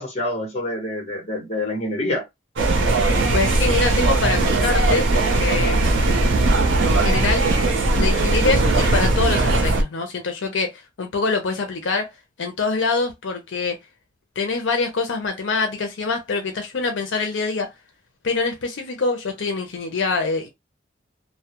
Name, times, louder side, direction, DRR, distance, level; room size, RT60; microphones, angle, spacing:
voice 1, 0.0-2.2, left 1 dB, 35° left, 0.9 m, -26 dB
sound 1, 2.6-9.8, right 2 dB, 75° right, 0.5 m, -19 dB
voice 2, 3.3-5.1 5.3-6.0 6.8-7.5 8.0-12.1 12.4-13.8 14.4-17.7 18.2-20.5, left 4 dB, 75° left, 0.5 m, -24 dB
2.2 x 2.0 x 2.8 m
head